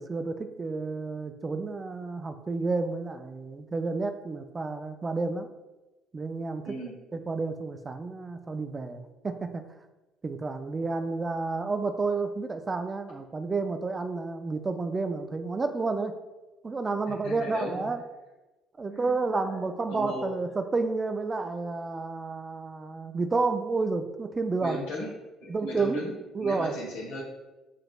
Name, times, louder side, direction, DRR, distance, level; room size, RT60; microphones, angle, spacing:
voice 1, 0.0-5.5 6.1-6.7 7.1-9.6 10.2-16.2 16.6-18.0 18.8-24.8 25.5-26.0 26.3-26.7, right 3 dB, 30° right, 7 dB, 0.4 m, -30 dB
voice 2, 6.6-7.0 17.2-17.8 18.8-19.6 19.9-20.3 24.6-25.1 25.4-27.2, left 1 dB, 75° left, -2 dB, 1.0 m, -37 dB
5.8 x 2.5 x 2.3 m, 1.1 s
hypercardioid pair, 60°, 0 cm